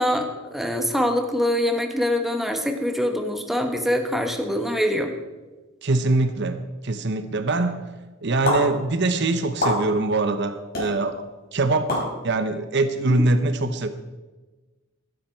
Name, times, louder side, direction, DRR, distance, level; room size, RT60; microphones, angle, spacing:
voice 1, 0.0-5.1, equal, ahead, 4 dB, 1.2 m, -24 dB
voice 2, 5.8-7.9 8.2-11.2 11.5-13.9, right 2 dB, 55° right, 10 dB, 0.9 m, -23 dB
sound 1, 8.4-8.6 9.6-9.8 10.7-10.9 11.9-12.1, left 1 dB, 45° left, 5.7 m, -22 dB
15.5 x 12.0 x 4.5 m, 1.2 s
head